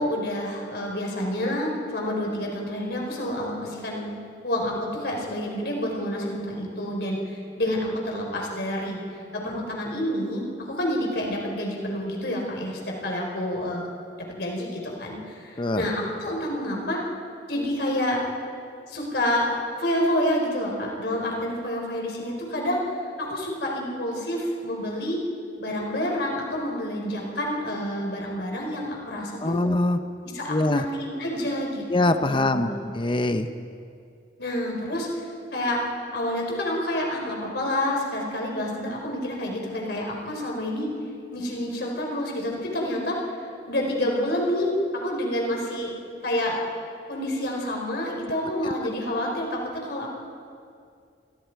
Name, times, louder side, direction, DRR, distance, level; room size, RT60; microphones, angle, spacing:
voice 1, 0.0-4.1 4.4-9.0 9.3-17.0 17.5-18.2 18.9-19.5 19.8-22.8 23.2-25.2 25.6-29.6 30.3-31.8 32.2-32.7 34.4-35.1 35.5-35.8 36.1-40.9 41.3-43.2 43.7-44.7 45.0-45.9 46.2-46.6 47.1-50.1, left 1 dB, 60° left, 0 dB, 4.3 m, -28 dB
voice 2, 29.4-30.0 30.5-30.9 31.9-33.5, left 2 dB, 25° left, 9 dB, 0.7 m, -23 dB
29.0 x 21.5 x 4.7 m, 2.4 s
head